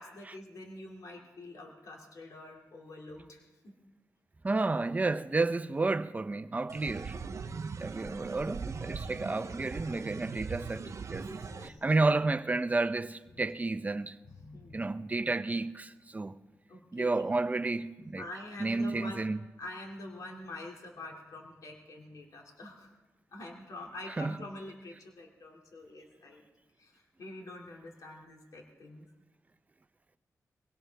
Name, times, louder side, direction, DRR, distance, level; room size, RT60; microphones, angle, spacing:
voice 1, 0.0-3.5 7.8-8.4 11.1-11.8 14.3-14.9 16.7-17.3 18.2-19.3 19.6-23.0 23.3-26.5 26.8-29.1, left 1 dB, 75° left, 2.5 m, -46 dB
voice 2, 4.4-7.2 7.8-11.3 11.6-14.2 14.7-16.4 16.9-18.2 18.6-19.4 24.2-24.3, right 3 dB, 25° right, 0.7 m, -31 dB
sound 1, 6.7-11.7, right 5 dB, 60° right, 0.7 m, -40 dB
23.0 x 17.5 x 3.4 m
cardioid pair, 85°, 6 cm